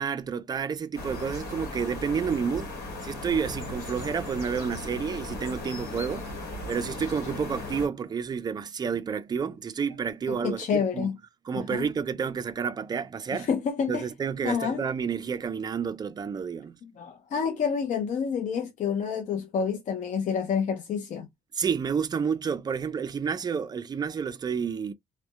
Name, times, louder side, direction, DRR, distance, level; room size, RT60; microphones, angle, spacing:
voice 1, 0.0-2.7 3.0-6.3 6.7-11.1 11.5-13.5 13.9-16.7 21.5-24.9, right 6 dB, 25° right, 0.3 m, -30 dB
sound 1, 0.9-7.9, left 2 dB, 65° left, 1.1 m, -37 dB
voice 2, 10.3-11.2 11.5-11.9 13.3-14.0 14.4-14.8 16.8-21.3, left 6 dB, 45° left, 0.5 m, -28 dB
2.6 x 2.1 x 2.3 m
cardioid pair, 110°, 17 cm